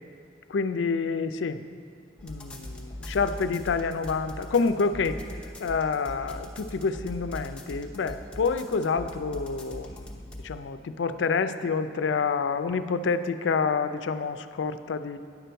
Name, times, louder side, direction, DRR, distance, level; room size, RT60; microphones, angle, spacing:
voice 1, 0.5-1.6 2.2-5.2 5.6-15.2, left 5 dB, 85° left, 11 dB, 0.4 m, -28 dB
sound 1, 2.2-10.5, left 1 dB, 5° left, 0.7 m, -41 dB
9.7 x 6.8 x 4.5 m, 2.4 s
head